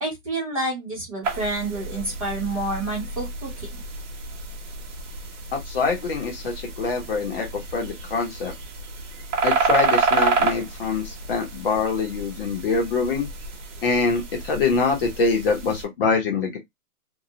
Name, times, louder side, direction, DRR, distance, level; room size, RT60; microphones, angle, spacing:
voice 1, 0.0-3.7, right 2 dB, 25° right, 0.6 m, -29 dB
sound 1, 1.2-15.8, right 4 dB, 55° right, 0.9 m, -29 dB
voice 2, 5.5-8.5 9.4-13.3 13.8-16.6, left 4 dB, 40° left, 0.8 m, -24 dB
2.3 x 2.0 x 2.7 m
hypercardioid pair, 160°, 45 cm